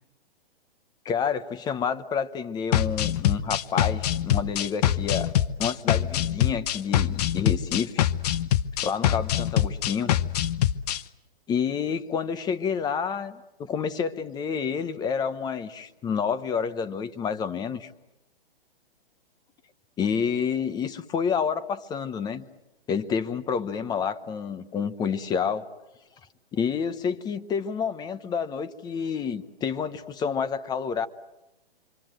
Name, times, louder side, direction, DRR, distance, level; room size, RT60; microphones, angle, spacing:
voice 1, 1.0-5.3 5.6-8.0 8.8-10.1 11.5-17.9 20.0-22.5 22.9-25.7 26.5-31.1, left 6 dB, 15° left, 12 dB, 0.9 m, -29 dB
sound 1, 2.7-11.0, left 11 dB, 40° left, 0.8 m, -24 dB
27.5 x 24.5 x 7.7 m, 0.98 s
hypercardioid pair, 145°, 30 cm